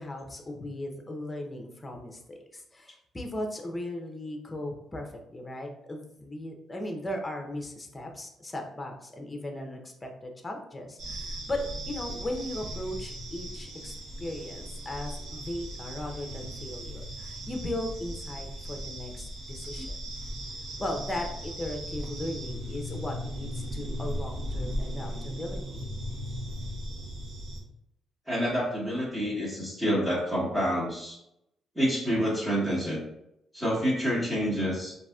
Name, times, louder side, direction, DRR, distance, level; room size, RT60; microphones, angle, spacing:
voice 1, 0.0-20.2 20.8-25.9, left 1 dB, 20° left, 3 dB, 0.7 m, -37 dB
sound 1, 11.0-27.6, equal, 65° right, 1.1 m, -37 dB
voice 2, 28.3-31.2 31.7-33.0 33.5-34.9, equal, 15° right, -7 dB, 1.2 m, -28 dB
3.9 x 2.7 x 2.3 m, 0.80 s
cardioid pair, 90°, 0 cm